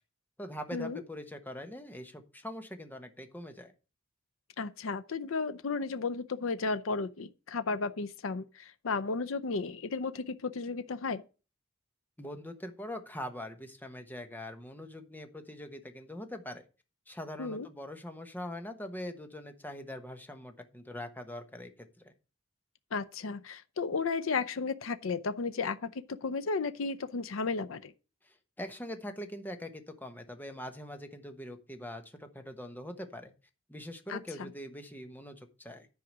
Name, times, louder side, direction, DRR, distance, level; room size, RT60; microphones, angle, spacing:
voice 1, 0.4-3.7 12.2-16.6 17.1-22.1 28.2-33.3 33.7-35.9, left 1 dB, 10° left, 1.1 m, -43 dB
voice 2, 4.6-11.2 17.4-17.7 22.9-27.9 34.1-34.5, left 4 dB, 80° left, 0.6 m, -34 dB
10.5 x 4.9 x 6.1 m
head